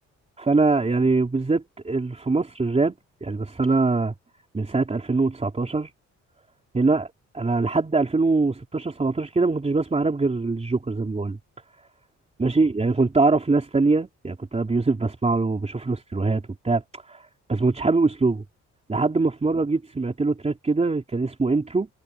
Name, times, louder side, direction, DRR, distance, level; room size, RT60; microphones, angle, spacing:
voice 1, 0.4-2.9 3.2-4.1 4.5-5.9 6.7-11.4 12.4-18.4 18.9-21.9, right 3 dB, 20° right, 3.6 m, -23 dB
cardioid pair, 90°, 30 cm